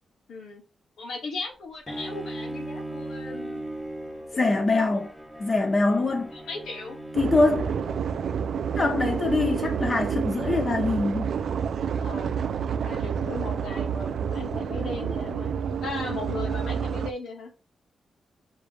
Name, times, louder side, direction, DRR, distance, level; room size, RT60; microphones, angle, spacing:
voice 1, 0.3-0.6 1.0-3.6 4.3-4.5 6.3-7.0 12.0-12.5 12.8-15.5 15.8-17.5, left 3 dB, 90° left, 2.3 m, -37 dB
Bowed string instrument, 1.9-8.9, right 1 dB, 5° left, 1.3 m, -38 dB
voice 2, 4.3-5.1 5.4-6.3 7.2-7.7 8.7-11.3, left 3 dB, 30° left, 1.1 m, -24 dB
sound 1, 7.1-17.1, right 7 dB, 75° right, 0.4 m, -29 dB
5.5 x 3.4 x 5.3 m
wide cardioid pair, 115°, 0 cm